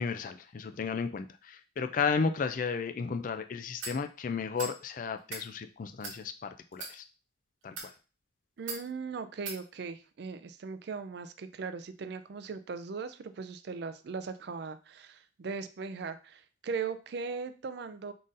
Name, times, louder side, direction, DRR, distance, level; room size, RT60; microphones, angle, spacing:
voice 1, 0.0-7.0 7.6-7.9, left 5 dB, 45° left, 9 dB, 0.3 m, -33 dB
sound 1, 3.8-4.0 4.6-4.8 5.2-5.5 6.0-6.2 6.7-6.9 7.6-7.9 8.7-8.8 9.5-9.6, right 3 dB, 90° right, 1.1 m, -39 dB
voice 2, 8.6-18.1, right 5 dB, 60° right, 11 dB, 0.4 m, -39 dB
3.9 x 3.8 x 2.5 m, 0.33 s
head